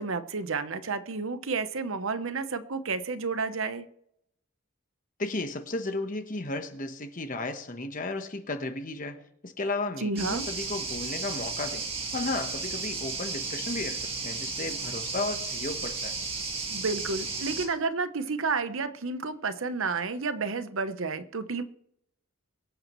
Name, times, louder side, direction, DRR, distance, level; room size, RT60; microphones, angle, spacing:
voice 1, 0.0-3.9 10.0-10.5 16.7-21.6, right 4 dB, 65° right, 0.9 m, -31 dB
voice 2, 5.2-11.9 12.1-16.2, left 2 dB, 40° left, 1.1 m, -34 dB
sound 1, 10.2-17.7, right 4 dB, 25° right, 1.8 m, -34 dB
23.5 x 7.9 x 3.1 m
head